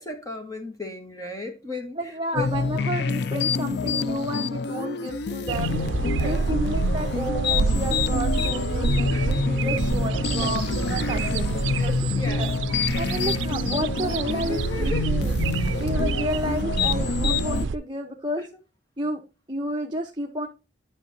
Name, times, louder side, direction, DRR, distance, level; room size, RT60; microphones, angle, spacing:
voice 1, 0.0-2.7 6.2-6.6 9.1-9.4 10.1-10.5 11.1-11.3 11.7-12.5 13.1-13.2 14.3-15.1 15.6-15.7 18.4-18.5, left 3 dB, 20° left, 1.4 m, -36 dB
voice 2, 2.0-5.8 6.2-9.2 9.5-12.5 13.0-15.4 15.8-18.4 19.0-19.2 19.5-20.5, right 1 dB, 25° right, 0.9 m, -31 dB
sound 1, 2.4-17.7, left 5 dB, 60° left, 0.4 m, -27 dB
sound 2, 5.5-17.8, right 4 dB, 80° right, 0.4 m, -27 dB
9.9 x 5.8 x 2.7 m
head